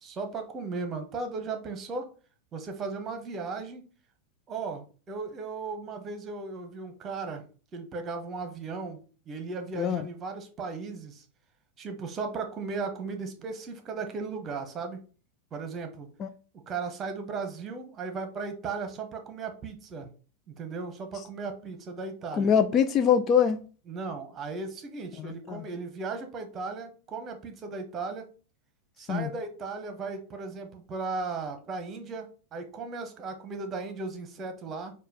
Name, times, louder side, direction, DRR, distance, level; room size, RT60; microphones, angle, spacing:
voice 1, 0.0-2.1 2.5-3.8 4.5-7.5 7.7-9.0 9.3-11.2 11.8-15.0 15.5-16.1 16.7-20.1 20.5-22.5 23.9-28.2 29.0-32.3 32.5-34.9, right 4 dB, 25° right, 1.0 m, -36 dB
voice 2, 22.3-23.6 25.2-25.6 29.1-29.3, left 7 dB, 30° left, 0.4 m, -24 dB
4.5 x 2.4 x 4.7 m
figure-of-eight pair, 90°, 0 cm